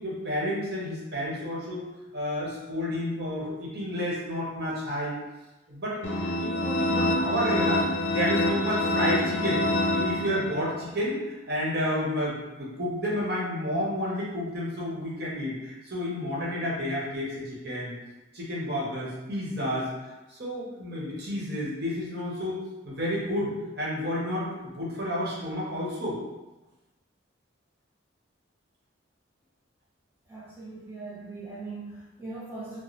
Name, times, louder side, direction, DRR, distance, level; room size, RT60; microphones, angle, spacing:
voice 1, 0.0-1.9 2.1-5.2 5.7-17.9 18.3-19.9 20.3-26.2, equal, 55° right, -6 dB, 1.0 m, -31 dB
sound 1, 6.0-10.8, left 1 dB, 70° left, 0.6 m, -26 dB
voice 2, 30.3-32.8, right 3 dB, 10° right, -8 dB, 0.5 m, -40 dB
4.0 x 2.0 x 3.1 m, 1.1 s
head